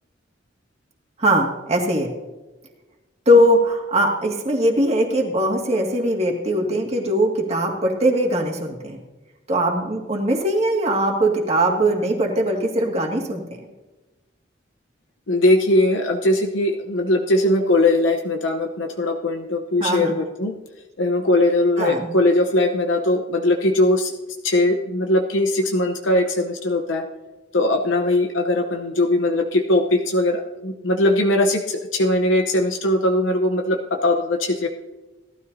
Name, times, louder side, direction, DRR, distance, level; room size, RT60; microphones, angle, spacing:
voice 1, 1.2-2.1 3.3-9.0 9.5-13.4 19.8-20.2 21.8-22.1, equal, 35° right, 0 dB, 2.0 m, -20 dB
voice 2, 15.3-20.6 21.0-24.1 24.4-27.1 27.5-34.7, left 1 dB, 90° left, 3 dB, 0.9 m, -20 dB
17.5 x 12.5 x 2.7 m, 1.1 s
head